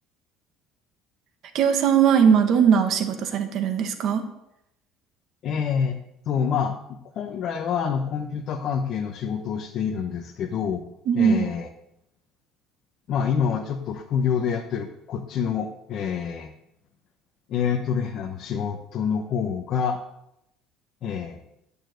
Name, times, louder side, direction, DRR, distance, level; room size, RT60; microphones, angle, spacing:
voice 1, 1.5-4.2 11.1-11.5, right 7 dB, 50° right, 7 dB, 1.7 m, -20 dB
voice 2, 5.4-6.0 6.3-10.8 11.1-11.7 13.1-16.5 17.5-20.0 21.0-21.4, left 7 dB, 50° left, 2 dB, 1.1 m, -27 dB
9.3 x 7.0 x 7.8 m, 0.82 s
cardioid pair, 135°, 0 cm